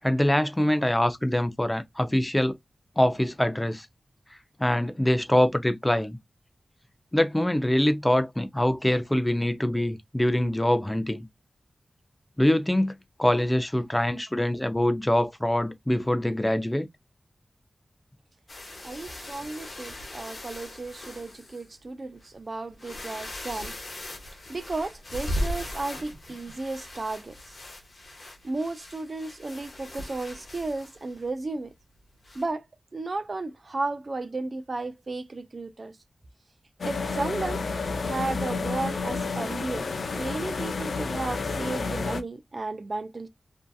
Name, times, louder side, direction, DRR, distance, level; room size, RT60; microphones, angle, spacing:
voice 1, 0.0-2.6 3.0-3.9 4.6-6.2 7.1-11.3 12.4-12.9 13.2-16.9, left 1 dB, 10° left, 0.4 m, -24 dB
sound 1, 18.5-21.7 22.2-22.3 22.7-31.3 32.2-32.5, left 1 dB, 55° left, 1.0 m, -38 dB
voice 2, 18.8-23.8 24.5-27.4 28.4-31.7 32.3-32.7 32.9-36.0 36.8-37.6 38.0-39.9 40.1-43.3, right 3 dB, 50° right, 0.4 m, -34 dB
sound 2, 36.8-42.2, left 4 dB, 85° left, 0.4 m, -30 dB
2.7 x 2.4 x 2.2 m
wide cardioid pair, 95°, 0 cm